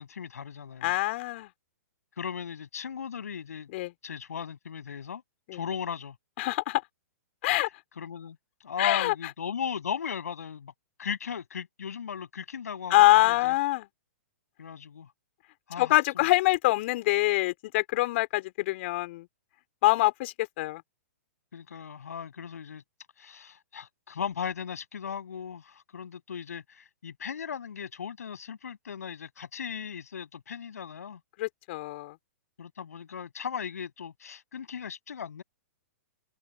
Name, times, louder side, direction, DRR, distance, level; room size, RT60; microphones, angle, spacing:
voice 1, 0.0-0.9 2.2-3.7 4.0-5.2 5.5-6.2 8.0-8.4 8.6-10.7 11.0-13.5 14.6-15.1 15.7-15.9 21.5-22.8 23.2-31.2 32.6-35.4, left 7 dB, 75° left, 7.1 m, -37 dB
voice 2, 0.8-1.5 3.7-3.9 5.5-5.6 6.4-6.8 7.4-7.7 8.8-9.1 12.9-13.9 15.8-19.3 19.8-20.8 31.4-32.1, left 19 dB, 50° left, 3.4 m, -25 dB
hypercardioid pair, 125°, 8 cm